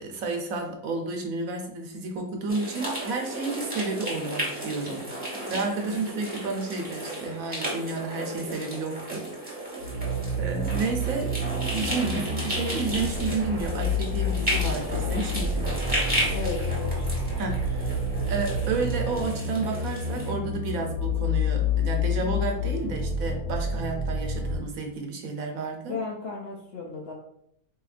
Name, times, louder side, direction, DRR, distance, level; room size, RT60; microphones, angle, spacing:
voice 1, 0.0-5.0 5.5-9.8 10.4-11.3 11.7-15.7 17.4-18.0 18.3-26.0, right 3 dB, 70° right, 2 dB, 1.1 m, -31 dB
sound 1, 2.5-20.3, right 1 dB, 5° right, 0.9 m, -33 dB
sound 2, 9.8-24.6, left 2 dB, 85° left, 1.3 m, -29 dB
sound 3, 12.8-19.2, left 1 dB, 30° left, 0.8 m, -37 dB
voice 2, 16.3-17.3 25.9-27.1, left 4 dB, 65° left, -2 dB, 0.6 m, -35 dB
4.1 x 2.8 x 2.4 m, 0.71 s
omnidirectional pair, 1.6 m